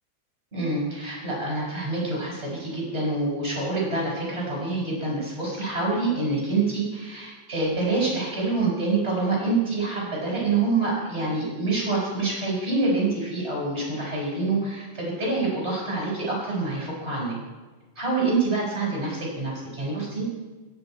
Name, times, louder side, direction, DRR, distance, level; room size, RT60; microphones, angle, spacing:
voice 1, 0.5-17.3 17.9-20.2, right 3 dB, 15° right, -4 dB, 5.2 m, -26 dB
17.0 x 9.1 x 4.5 m, 1.3 s
omnidirectional pair, 5.0 m